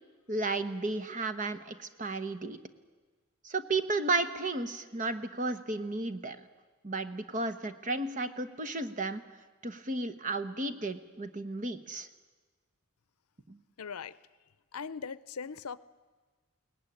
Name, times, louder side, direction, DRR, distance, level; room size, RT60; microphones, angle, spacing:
voice 1, 0.3-2.6 3.4-6.4 6.8-9.2 9.6-12.1 13.5-13.6, right 2 dB, 35° right, 10 dB, 1.1 m, -33 dB
voice 2, 13.8-14.2 14.7-15.8, left 6 dB, 80° left, 17 dB, 0.7 m, -39 dB
22.5 x 18.5 x 10.0 m, 1.4 s
head